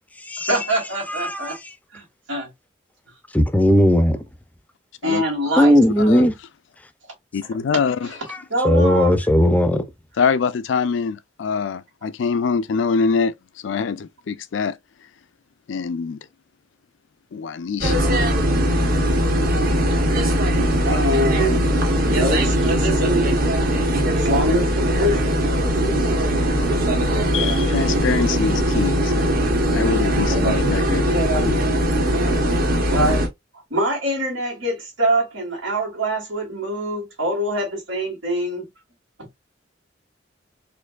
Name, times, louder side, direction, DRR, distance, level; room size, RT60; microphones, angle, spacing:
voice 1, 0.5-1.6 1.9-2.5 5.0-5.7 6.0-6.2 8.5-9.1 20.1-20.3 20.8-23.4 24.1-25.7 27.3-27.6 31.0-31.5 32.9-33.2 33.7-38.7, right 1 dB, 90° right, 2.0 m, -24 dB
voice 2, 1.1-1.7 3.3-4.2 5.6-6.3 8.6-9.8, equal, 10° left, 0.5 m, -17 dB
voice 3, 7.3-8.1 8.9-9.0 10.2-14.8 15.7-16.2 17.3-18.2 26.6-26.7 27.3-29.4 29.7-31.1 31.5-31.6, left 5 dB, 65° left, 0.4 m, -24 dB
sound 1, 17.8-33.3, equal, 50° right, 1.1 m, -20 dB
4.3 x 2.6 x 2.4 m
head